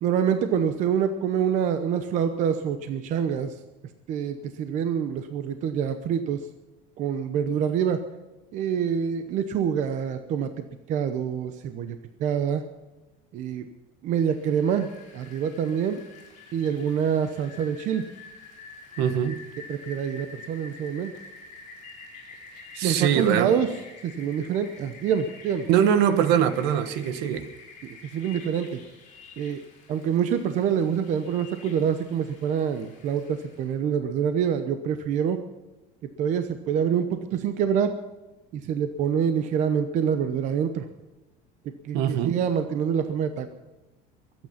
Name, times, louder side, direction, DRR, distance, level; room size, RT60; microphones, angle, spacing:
voice 1, 0.0-3.6 4.1-6.5 7.0-8.0 8.5-10.5 10.9-12.6 13.3-13.6 14.0-16.0 16.5-18.1 19.1-19.2 19.7-21.1 22.8-23.7 24.0-25.7 27.8-28.8 29.4-29.6 29.9-35.4 36.2-37.9 38.5-40.9 41.8-43.5, right 8 dB, 40° right, 0.8 m, -26 dB
Rain, 14.2-33.7, left 4 dB, 35° left, 5.8 m, -48 dB
voice 2, 19.0-19.4 22.7-23.6 25.7-27.5 41.9-42.4, right 9 dB, 55° right, 1.2 m, -23 dB
23.0 x 9.2 x 5.8 m
cardioid pair, 175°, 20 cm